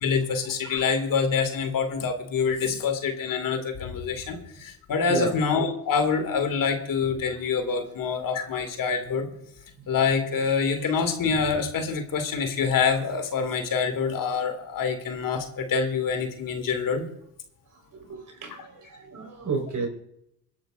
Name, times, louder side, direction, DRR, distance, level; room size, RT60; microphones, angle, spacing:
voice 1, 0.0-9.3 9.9-17.0, left 5 dB, 55° left, 6 dB, 2.4 m, -26 dB
voice 2, 17.9-19.9, right 4 dB, 50° right, 3 dB, 4.6 m, -31 dB
25.5 x 10.5 x 2.6 m, 0.75 s
supercardioid pair, 75°, 40 cm